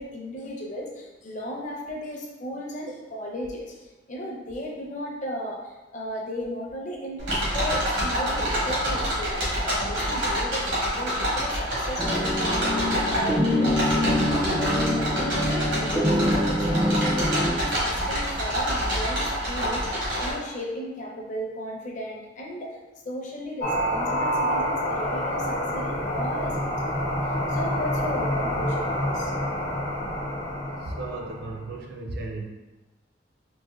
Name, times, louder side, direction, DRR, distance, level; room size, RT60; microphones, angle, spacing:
voice 1, 0.0-22.8 23.0-29.3, equal, 45° left, -1 dB, 0.6 m, -35 dB
sound 1, 7.2-20.3, equal, 80° right, 1.5 m, -27 dB
sound 2, 12.0-17.5, left 1 dB, 10° right, 0.4 m, -25 dB
sound 3, 23.6-31.6, equal, 75° left, 1.0 m, -27 dB
voice 2, 30.8-32.4, right 2 dB, 60° right, 0 dB, 0.6 m, -35 dB
4.1 x 2.5 x 2.3 m, 1.2 s
head